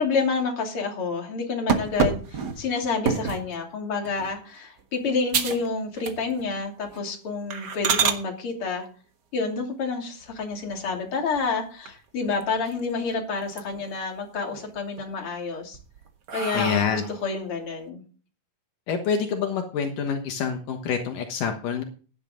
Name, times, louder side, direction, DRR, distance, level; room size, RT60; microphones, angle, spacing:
voice 1, 0.0-8.9 9.3-15.8 16.3-18.0, left 4 dB, 40° left, 1 dB, 3.4 m, -29 dB
sound 1, 1.7-3.5 4.1-4.4 4.8-4.9 5.3-5.7 6.0-6.5 6.9-7.0 7.5-8.2 10.2-10.9 11.4-11.5 11.9-12.0 12.2-13.0 13.4-14.0 14.4-15.0 15.6-17.3, right 6 dB, 55° right, 1.1 m, -28 dB
voice 2, 16.5-17.0 18.9-21.8, left 6 dB, 75° left, 4 dB, 2.9 m, -26 dB
16.0 x 10.5 x 3.8 m, 0.39 s
omnidirectional pair, 3.9 m